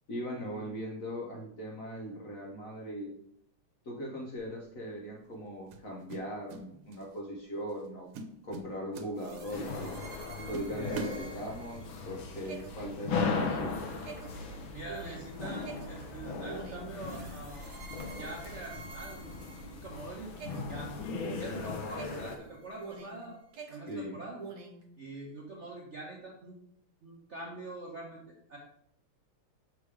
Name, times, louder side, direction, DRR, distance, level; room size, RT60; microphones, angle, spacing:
voice 1, 0.1-3.1 3.8-8.1 8.4-9.9 10.5-13.9 23.9-24.2, equal, 50° left, -2 dB, 1.1 m, -39 dB
sound 1, 4.4-4.6 5.7-6.7 6.9-7.2 7.7-7.9 8.1-9.6 10.1-10.2 10.5-11.8, right 3 dB, 85° right, 1.6 m, -42 dB
sound 2, 9.2-20.0 20.4-23.2 23.5-24.8, right 4 dB, 70° right, 1.8 m, -48 dB
sound 3, 9.5-22.4, left 4 dB, 70° left, 1.6 m, -38 dB
voice 2, 14.6-17.9 18.2-19.3 19.7-20.4 20.7-23.4 23.7-24.4 25.0-26.5 27.0-28.6, right 2 dB, 50° right, -2 dB, 0.8 m, -44 dB
6.6 x 3.4 x 4.8 m, 0.73 s
omnidirectional pair, 2.4 m